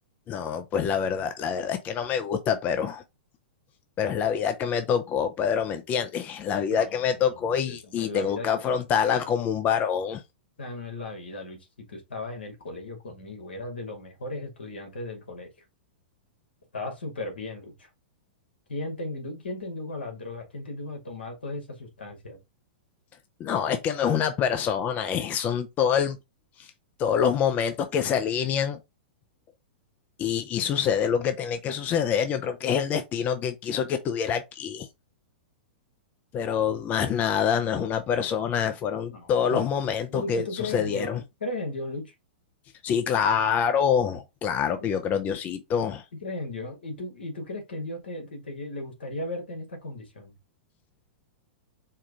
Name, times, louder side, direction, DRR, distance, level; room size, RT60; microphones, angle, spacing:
voice 1, 0.3-3.0 4.0-10.2 23.4-26.2 26.6-26.7 27.0-28.8 30.2-34.9 36.3-41.2 42.8-46.0, left 7 dB, 30° left, 0.6 m, -26 dB
voice 2, 6.7-8.7 10.6-11.6 11.9-15.5 16.7-17.9 18.7-22.4 39.1-39.7 40.1-42.1 46.2-50.3, left 2 dB, 85° left, 2.0 m, -36 dB
4.6 x 2.4 x 4.7 m
hypercardioid pair, 115°, 5 cm